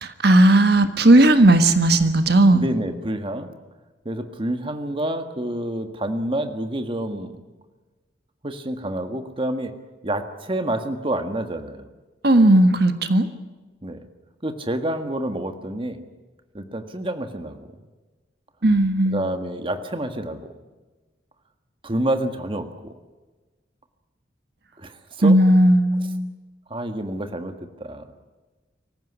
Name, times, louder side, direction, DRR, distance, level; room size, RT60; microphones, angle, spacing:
voice 1, 0.0-2.6 12.2-13.3 18.6-19.3 25.2-26.3, right 1 dB, 60° right, 9 dB, 1.5 m, -16 dB
voice 2, 2.5-3.5 4.0-7.4 8.4-9.7 10.0-11.9 13.8-14.0 14.4-16.0 16.5-17.7 19.0-20.5 21.8-22.9 24.8-25.4 26.7-28.0, right 1 dB, 30° right, 7 dB, 1.6 m, -28 dB
25.0 x 15.5 x 10.0 m, 1.2 s
head